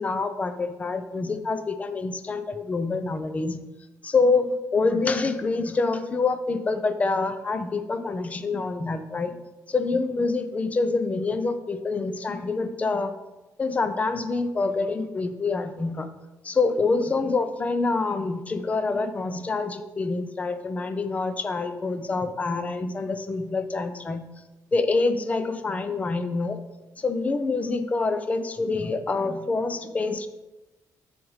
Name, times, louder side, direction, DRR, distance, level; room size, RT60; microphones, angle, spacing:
voice 1, 0.0-3.6 4.0-9.4 9.7-13.1 13.6-16.1 16.4-24.2 24.7-26.6 27.0-30.3, left 3 dB, 20° left, 10 dB, 0.5 m, -26 dB
13.0 x 5.0 x 3.2 m, 1.1 s
cardioid pair, 165°, 7 cm